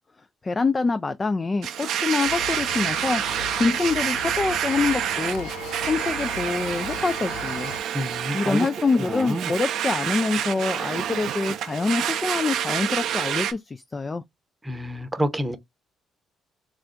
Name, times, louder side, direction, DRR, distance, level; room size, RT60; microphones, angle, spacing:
voice 1, 0.4-3.2 3.6-5.5 5.8-7.7 8.3-14.2, left 4 dB, 30° left, 0.3 m, -25 dB
Domestic sounds home sounds, 1.6-13.5, right 10 dB, 70° right, 0.4 m, -28 dB
sound 1, 2.2-7.8, left 6 dB, 85° left, 0.6 m, -37 dB
voice 2, 7.9-8.7 9.0-9.5 14.6-15.6, equal, 15° right, 0.8 m, -28 dB
3.4 x 2.4 x 3.3 m
hypercardioid pair, 55°, 0 cm